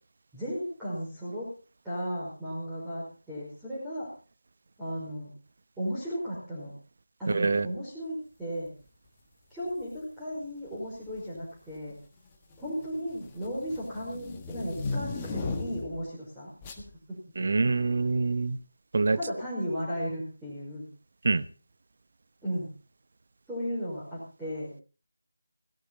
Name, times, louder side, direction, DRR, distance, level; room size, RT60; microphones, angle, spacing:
voice 1, 0.3-1.5 1.8-4.1 4.8-5.3 5.8-6.7 7.2-8.7 9.5-12.0 12.6-16.5 17.1-17.2 19.1-20.9 22.4-22.7 23.5-24.7, equal, 5° right, -10 dB, 5.3 m, -35 dB
voice 2, 7.3-7.7 17.4-18.6 18.9-19.2 21.2-21.4, right 3 dB, 45° right, 14 dB, 1.0 m, -25 dB
sound 1, 9.7-10.0 11.0-11.4 11.7-16.0 16.6-16.9, left 3 dB, 15° left, 1.6 m, -37 dB
17.0 x 14.5 x 4.1 m, 0.36 s
figure-of-eight pair, 160°, 0 cm